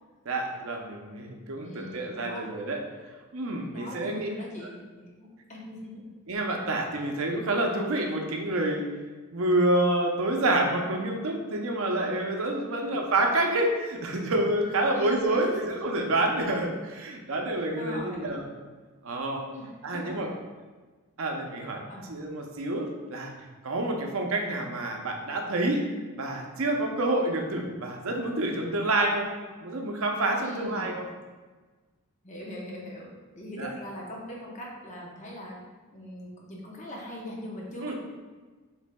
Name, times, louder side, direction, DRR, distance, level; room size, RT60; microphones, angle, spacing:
voice 1, 0.3-2.8 3.3-4.3 6.3-8.9 9.3-18.4 19.0-19.4 19.8-20.3 21.2-23.3 23.6-25.8 26.2-29.3 29.6-31.1 33.6-33.7 37.8-37.9, right 1 dB, 70° right, 2 dB, 0.6 m, -28 dB
voice 2, 1.5-2.5 3.7-6.0 12.8-12.9 14.9-15.7 17.8-18.6 19.5-20.2 21.9-22.1 30.4-31.0 32.2-35.6 35.9-37.9, left 1 dB, 35° left, -3 dB, 0.7 m, -41 dB
6.1 x 3.3 x 2.2 m, 1.3 s
head